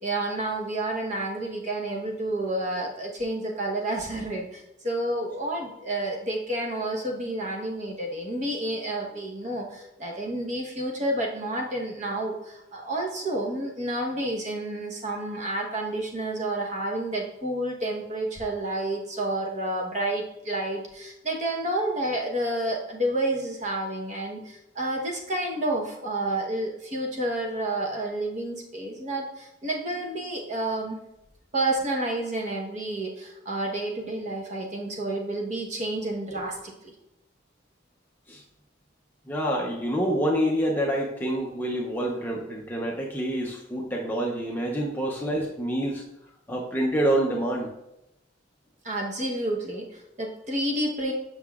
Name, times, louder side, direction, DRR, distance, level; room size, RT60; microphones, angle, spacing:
voice 1, 0.0-31.0 31.5-36.9 48.8-51.1, right 1 dB, 35° right, 0 dB, 0.9 m, -30 dB
voice 2, 39.3-46.0 46.5-47.7, right 1 dB, 10° left, -2 dB, 0.5 m, -27 dB
7.6 x 5.8 x 2.3 m, 0.87 s
head